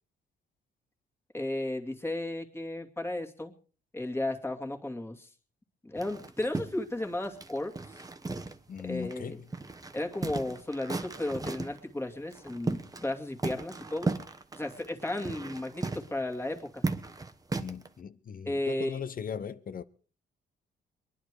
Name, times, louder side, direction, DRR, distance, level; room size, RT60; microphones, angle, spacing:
voice 1, 1.3-3.5 3.9-5.3 5.8-7.7 8.8-9.4 9.9-14.1 14.5-16.8 18.4-19.0, left 1 dB, 10° left, 2.4 m, -34 dB
sound 1, 6.0-8.8 9.1-9.2 9.5-11.8 12.3-13.1 13.4-17.9, right 3 dB, 20° right, 1.2 m, -36 dB
voice 2, 8.7-9.5 17.6-19.8, left 7 dB, 45° left, 0.9 m, -38 dB
22.5 x 10.5 x 4.8 m
cardioid pair, 90°, 20 cm